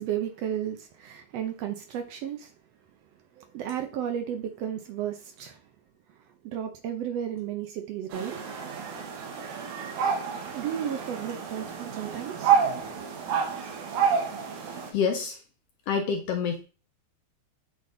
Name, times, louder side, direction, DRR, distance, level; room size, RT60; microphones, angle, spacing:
voice 1, 0.0-2.5 3.4-5.6 6.4-8.3 10.5-12.5, right 9 dB, 70° right, 1.7 m, -33 dB
sound 1, 8.1-14.9, right 6 dB, 90° right, 2.5 m, -29 dB
voice 2, 14.9-15.4 15.9-16.6, left 6 dB, 70° left, 1.6 m, -27 dB
8.2 x 3.9 x 3.8 m
omnidirectional pair, 3.3 m